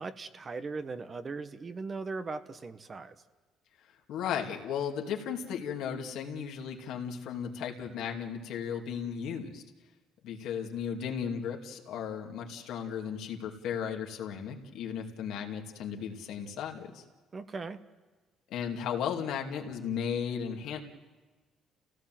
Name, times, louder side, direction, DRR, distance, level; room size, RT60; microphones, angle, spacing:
voice 1, 0.0-3.2 17.3-17.8, right 4 dB, 35° right, 10 dB, 1.2 m, -39 dB
voice 2, 4.1-9.6 10.2-17.0 18.5-20.8, left 7 dB, 80° left, 1 dB, 2.5 m, -35 dB
30.0 x 16.5 x 7.7 m, 1.3 s
cardioid pair, 90°, 0 cm